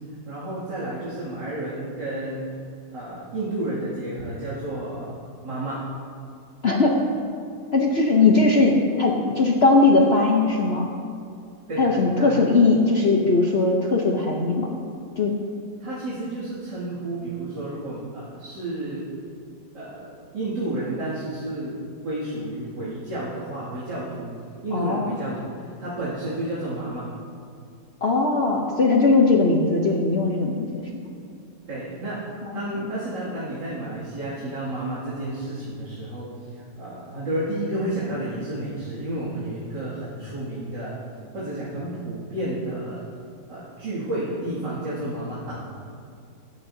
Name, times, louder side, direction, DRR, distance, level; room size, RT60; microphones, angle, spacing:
voice 1, 0.2-2.5 2.9-5.1 5.4-5.9 11.7-11.8 12.2-12.5 15.8-19.1 19.7-24.3 24.6-27.1 31.7-36.5 36.8-41.0 41.3-43.0 43.5-45.7, right 1 dB, 75° right, -11 dB, 3.2 m, -31 dB
voice 2, 6.6-7.0 7.7-10.9 11.8-14.7 15.2-15.3 24.7-25.1 28.0-30.8 32.5-32.6, left 3 dB, 45° left, -1 dB, 0.9 m, -19 dB
25.5 x 8.6 x 2.8 m, 2.4 s
omnidirectional pair, 1.9 m